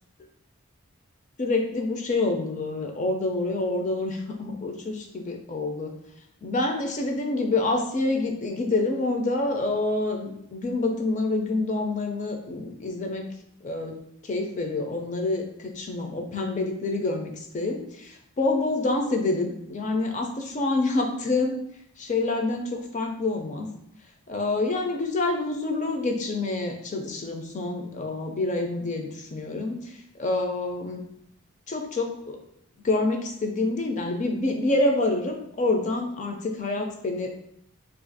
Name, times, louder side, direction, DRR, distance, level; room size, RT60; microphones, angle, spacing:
voice 1, 1.4-5.9 6.4-13.3 13.6-14.0 14.2-21.6 22.0-23.7 24.3-31.0 31.7-32.4 32.8-37.4, left 2 dB, 35° left, 3 dB, 0.4 m, -27 dB
2.7 x 2.5 x 3.9 m, 0.75 s
head